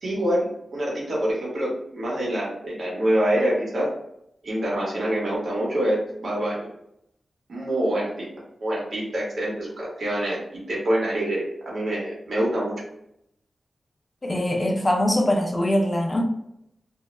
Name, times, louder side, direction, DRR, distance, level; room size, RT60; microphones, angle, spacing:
voice 1, 0.0-3.9 4.4-6.7 7.5-8.3 8.6-10.4 10.7-12.7, right 1 dB, 70° right, -5 dB, 1.0 m, -25 dB
voice 2, 14.2-16.2, left 1 dB, 30° left, 2 dB, 0.5 m, -22 dB
2.2 x 2.1 x 3.1 m, 0.79 s
cardioid pair, 70°, 0 cm